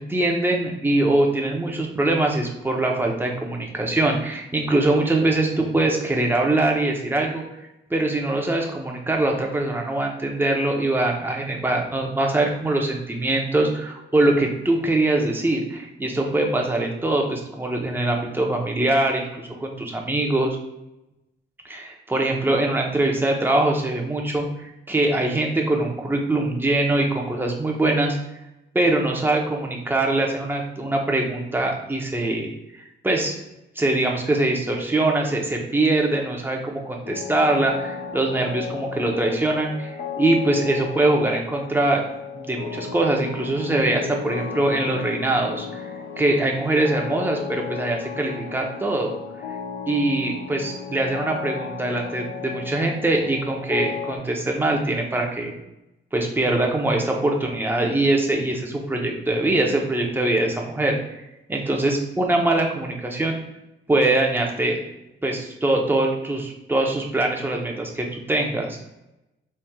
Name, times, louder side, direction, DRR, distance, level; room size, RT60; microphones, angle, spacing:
voice 1, 0.0-7.4 7.9-20.6 21.6-28.2 28.7-33.4 33.8-42.0 42.3-45.8 46.2-49.1 49.9-55.5 56.1-61.0 61.5-63.4 63.9-64.8 65.2-68.8, right 2 dB, 10° right, 0 dB, 0.8 m, -23 dB
sound 1, 37.0-54.2, left 7 dB, 65° left, 0.8 m, -34 dB
4.2 x 3.2 x 2.3 m, 0.91 s
cardioid pair, 90°, 20 cm